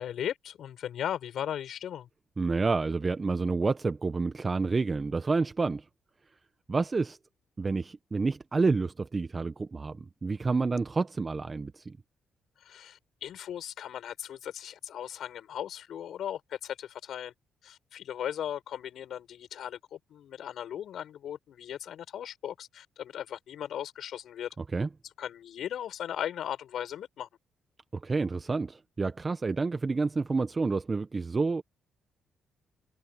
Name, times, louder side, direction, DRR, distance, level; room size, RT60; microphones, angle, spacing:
voice 1, 0.0-2.1 12.6-17.3 17.6-24.5 25.2-27.3, left 10 dB, 70° left, 6.8 m, -37 dB
voice 2, 2.4-5.8 6.7-7.2 7.6-12.0 24.7-24.9 28.0-31.6, right 4 dB, 30° right, 0.9 m, -29 dB
cardioid pair, 90°, 0 cm